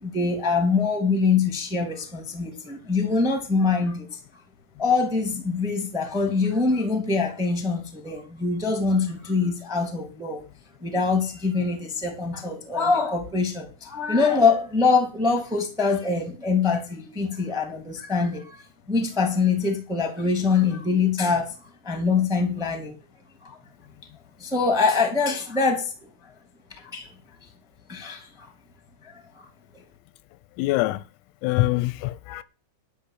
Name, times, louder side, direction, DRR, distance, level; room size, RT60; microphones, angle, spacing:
voice 1, 0.0-4.2 4.8-10.4 10.8-18.6 18.9-21.5 21.8-22.9 23.4-23.6 24.4-25.9 26.8-27.1 27.9-28.5 29.3-29.4 29.7-29.8, left 4 dB, ahead, 1.6 m, -24 dB
voice 2, 30.6-31.0 31.4-32.4, left 18 dB, 90° left, 3.5 m, -24 dB
12.0 x 5.2 x 8.9 m
omnidirectional pair, 5.9 m